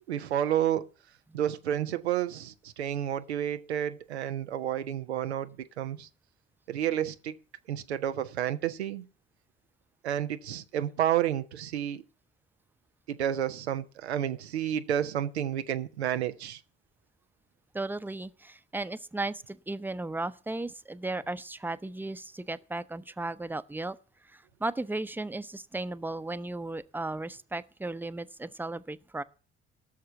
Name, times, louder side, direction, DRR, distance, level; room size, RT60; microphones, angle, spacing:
voice 1, 0.1-0.9 1.3-6.1 6.7-7.3 7.7-9.0 10.0-12.0 13.1-16.6, right 10 dB, 90° right, 0.5 m, -30 dB
voice 2, 17.7-24.0 24.2-29.2, right 2 dB, 5° right, 0.7 m, -35 dB
17.0 x 6.6 x 5.8 m
figure-of-eight pair, 40°, 32 cm